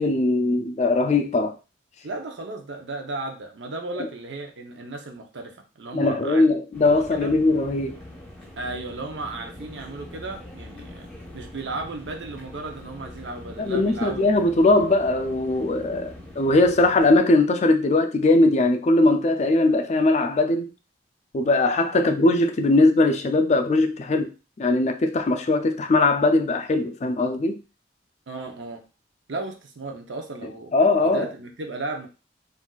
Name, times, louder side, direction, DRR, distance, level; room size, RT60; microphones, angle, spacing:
voice 1, 0.0-1.6 4.0-4.1 5.9-8.0 13.6-20.7 21.3-24.3 24.6-27.6 30.7-31.3, left 2 dB, 40° left, 0.4 m, -20 dB
voice 2, 2.0-6.4 7.1-7.3 8.6-11.1 11.3-14.2 21.9-22.1 28.3-28.8 29.3-30.7 31.0-32.1, right 2 dB, 85° right, 0.7 m, -35 dB
sound 1, 6.7-17.2, left 1 dB, 5° left, 1.0 m, -43 dB
3.8 x 2.5 x 2.3 m
head